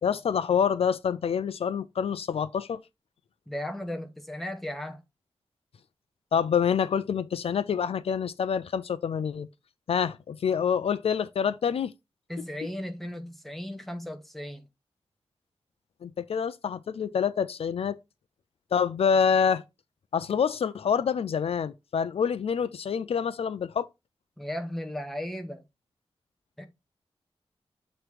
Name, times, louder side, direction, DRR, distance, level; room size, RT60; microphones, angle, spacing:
voice 1, 0.0-2.8 6.3-9.5 9.9-11.9 16.0-18.0 18.7-19.6 20.1-23.9, left 7 dB, 65° left, 0.4 m, -27 dB
voice 2, 3.5-5.0 12.3-14.6 24.4-25.6 26.6-26.7, left 1 dB, ahead, 0.9 m, -36 dB
7.7 x 3.0 x 4.8 m
wide cardioid pair, 170°, 11 cm